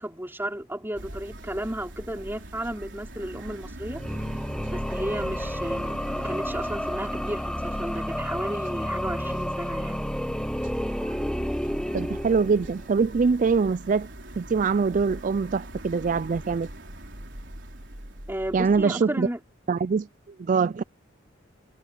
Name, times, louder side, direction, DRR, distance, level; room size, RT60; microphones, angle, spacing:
voice 1, 0.0-4.0 4.6-10.1 18.3-19.4, right 1 dB, 10° right, 4.0 m, -33 dB
sound 1, 0.9-18.8, right 1 dB, 65° right, 4.4 m, -42 dB
sound 2, 3.9-12.9, equal, 5° left, 0.6 m, -31 dB
voice 2, 11.9-14.1 14.4-16.7 18.5-19.3 19.7-20.1 20.4-20.8, right 5 dB, 40° right, 0.4 m, -23 dB
head